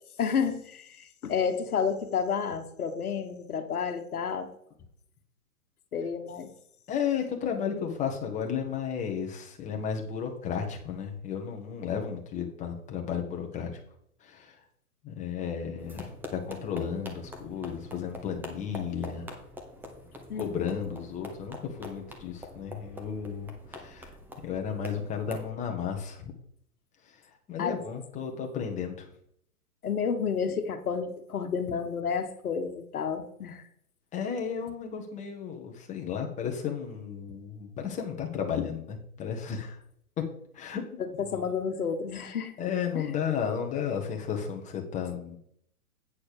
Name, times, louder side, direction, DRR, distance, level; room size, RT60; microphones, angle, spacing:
voice 1, 0.2-4.5 5.9-6.5 20.3-20.8 27.6-27.8 29.8-33.6 41.0-42.5 42.9-43.1, left 6 dB, 75° left, 8 dB, 1.4 m, -31 dB
voice 2, 6.9-13.7 14.2-14.5 15.0-19.3 20.4-24.1 24.4-26.3 27.5-29.1 34.1-39.8 40.5-41.4 42.6-45.4, left 7 dB, 15° left, 3 dB, 1.3 m, -33 dB
sound 1, 15.8-25.5, left 1 dB, 5° right, 0.8 m, -45 dB
8.5 x 4.2 x 6.6 m, 0.69 s
hypercardioid pair, 130°, 44 cm